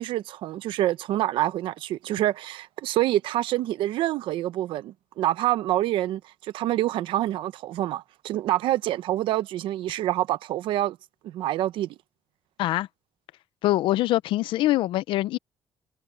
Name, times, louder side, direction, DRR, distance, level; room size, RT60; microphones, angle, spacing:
voice 1, 0.0-11.0 11.2-11.9, right 14 dB, 85° right, 0.8 m, -26 dB
voice 2, 13.6-15.4, left 16 dB, 85° left, 0.5 m, -23 dB
cardioid pair, 165°, 8 cm